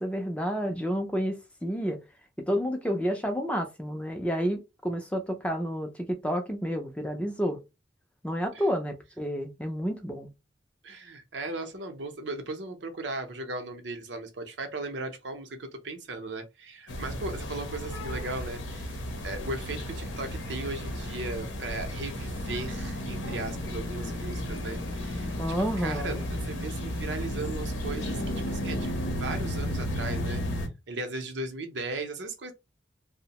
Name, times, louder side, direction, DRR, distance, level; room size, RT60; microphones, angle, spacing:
voice 1, 0.0-2.0 2.5-7.6 8.2-10.3 25.4-26.2, equal, 5° left, 0.4 m, -30 dB
voice 2, 10.8-25.3 25.8-30.4 30.9-32.5, right 2 dB, 75° right, 0.6 m, -37 dB
sound 1, 16.9-30.7, equal, 90° left, 0.7 m, -33 dB
2.7 x 2.0 x 2.8 m
head